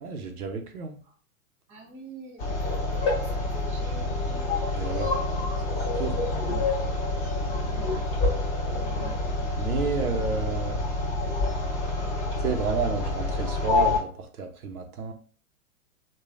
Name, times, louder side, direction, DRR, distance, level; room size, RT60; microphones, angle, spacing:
voice 1, 0.0-1.0 4.7-5.1 5.8-6.2 9.6-10.8 12.4-15.1, right 5 dB, 90° right, 5 dB, 0.7 m, -30 dB
voice 2, 1.7-4.5 5.1-5.3 7.5-7.8, right 2 dB, 25° right, 0 dB, 1.1 m, -46 dB
sound 1, 2.4-14.0, left 3 dB, 30° left, 1.4 m, -27 dB
3.2 x 2.3 x 2.4 m, 0.41 s
hypercardioid pair, 115°, 43 cm